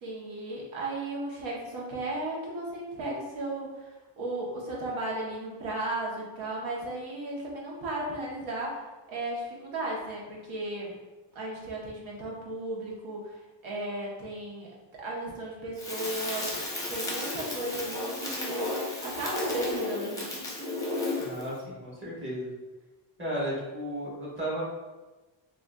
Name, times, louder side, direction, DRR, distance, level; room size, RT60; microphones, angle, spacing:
voice 1, 0.0-8.8 9.1-11.0 11.3-16.5 16.9-20.5, right 1 dB, 85° right, -3 dB, 1.0 m, -35 dB
Crackle, 15.8-21.5, left 2 dB, 10° left, 0.6 m, -33 dB
voice 2, 21.2-22.5 23.2-24.7, right 1 dB, 25° right, -7 dB, 1.2 m, -34 dB
3.7 x 2.4 x 2.2 m, 1.2 s
cardioid pair, 135°, 46 cm